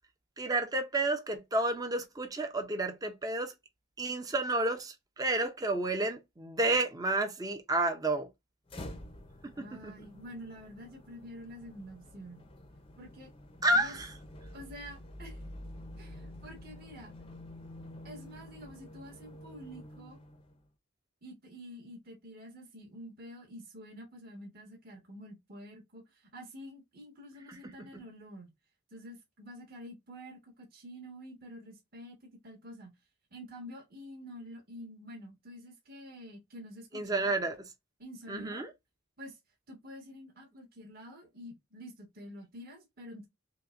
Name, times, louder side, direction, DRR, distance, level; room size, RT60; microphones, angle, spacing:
voice 1, 0.4-3.5 4.0-8.3 9.4-9.9 13.6-14.1 27.9-28.0 36.9-37.6 38.3-38.7, right 2 dB, 15° right, 0.6 m, -31 dB
sound 1, 8.7-20.7, left 1 dB, 25° left, 0.6 m, -49 dB
voice 2, 9.5-12.4 13.0-13.3 13.7-14.0 14.5-15.4 16.0-17.1 18.0-20.2 21.2-28.5 28.9-32.9 33.3-37.3 38.0-38.7 39.2-39.4 39.7-43.3, equal, 45° right, 1.5 m, -48 dB
5.8 x 2.2 x 2.4 m
head